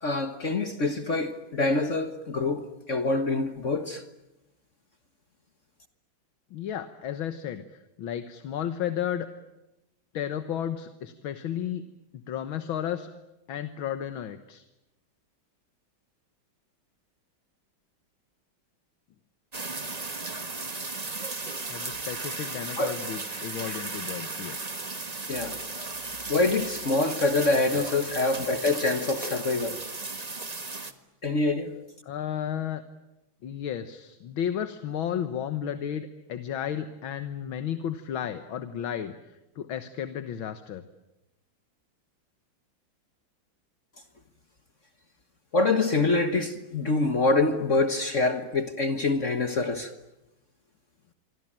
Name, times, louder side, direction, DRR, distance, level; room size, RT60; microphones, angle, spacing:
voice 1, 0.0-4.0 22.8-22.9 25.3-25.6 26.3-29.8 31.2-31.7 45.5-49.9, left 3 dB, 40° left, 1.6 m, -25 dB
voice 2, 6.5-7.6 8.0-9.3 10.1-11.8 12.1-13.1 13.5-14.6 21.7-24.7 32.0-32.8 33.4-40.8, left 9 dB, 80° left, 2.0 m, -33 dB
sound 1, 19.5-30.9, right 3 dB, 20° right, 1.4 m, -35 dB
27.0 x 24.5 x 8.9 m
omnidirectional pair, 2.2 m